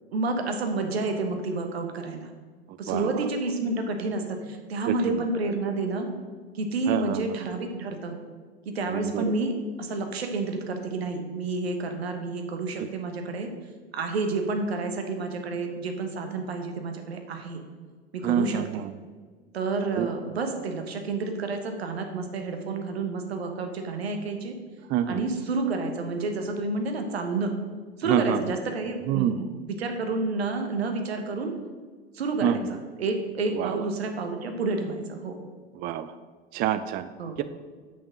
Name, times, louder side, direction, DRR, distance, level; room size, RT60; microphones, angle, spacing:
voice 1, 0.1-2.3 2.8-6.1 6.5-8.2 8.6-13.5 13.9-17.6 18.1-18.8 19.5-24.6 25.1-27.5 28.0-31.5 32.1-35.4 37.2-37.4, right 3 dB, 80° right, 5 dB, 1.2 m, -29 dB
voice 2, 2.9-3.2 4.9-5.3 6.9-7.2 8.9-9.3 12.8-12.9 18.2-18.9 20.0-20.1 24.9-25.2 28.1-28.4 29.1-29.4 32.4-32.6 33.5-33.8 35.8-36.1 36.5-37.1 37.4-37.5, right 10 dB, 30° right, 12 dB, 0.4 m, -27 dB
6.4 x 5.8 x 6.1 m, 1.5 s
figure-of-eight pair, 80°, 31 cm